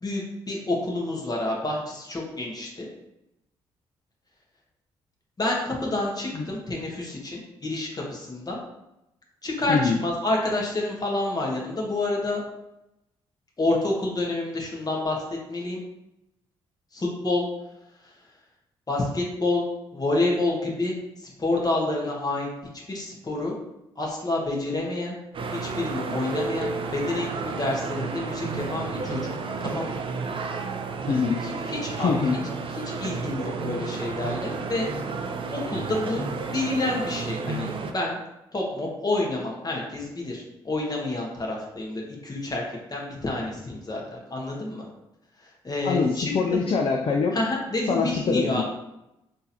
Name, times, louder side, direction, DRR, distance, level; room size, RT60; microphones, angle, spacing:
voice 1, 0.0-2.9 5.4-8.6 9.4-12.4 13.6-15.2 15.5-15.8 16.9-17.5 18.9-19.7 19.9-21.0 21.2-22.5 22.9-23.5 24.0-25.2 25.6-30.0 31.1-32.1 32.8-34.9 35.5-36.2 36.5-38.2 38.5-42.6 42.9-44.8 45.6-46.6 47.3-48.6, left 2 dB, 30° left, -2 dB, 1.3 m, -28 dB
Cinco de Mayo urban cookout, 25.3-37.9, right 4 dB, 40° right, 0.4 m, -32 dB
voice 2, 32.0-32.3 45.8-47.3 47.9-48.6, left 5 dB, 45° left, 2 dB, 0.5 m, -23 dB
3.7 x 2.7 x 2.9 m, 0.89 s
hypercardioid pair, 45°, 13 cm